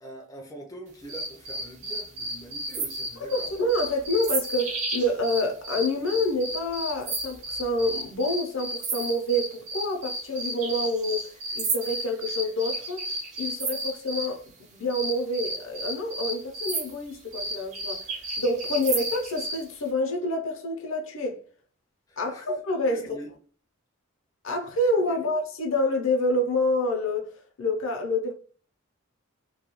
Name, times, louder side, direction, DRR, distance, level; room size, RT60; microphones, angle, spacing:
voice 1, 0.0-3.5 22.1-22.5 22.9-23.3 25.1-25.2, right 1 dB, 15° left, 0.4 m, -43 dB
sound 1, 1.1-14.4 14.9-19.7, right 2 dB, 35° right, 0.5 m, -33 dB
voice 2, 3.2-11.3 11.5-13.0 13.4-14.4 14.7-21.4 22.2-23.2 24.4-27.3 27.6-28.3, left 1 dB, 65° left, 0.6 m, -27 dB
2.3 x 2.2 x 2.9 m
head